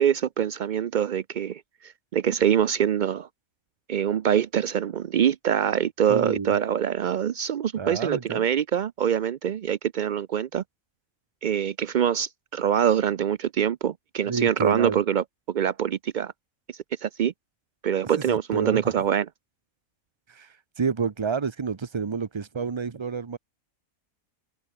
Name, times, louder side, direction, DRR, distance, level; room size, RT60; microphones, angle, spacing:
voice 1, 0.0-3.3 3.9-10.6 11.4-16.3 17.0-17.3 17.8-19.3, right 9 dB, 80° right, 0.4 m, -24 dB
voice 2, 6.1-6.6 7.8-8.4 14.3-15.0 18.1-18.9 20.3-20.5 20.8-23.4, right 5 dB, 30° right, 0.6 m, -29 dB
omnidirectional pair, 1.5 m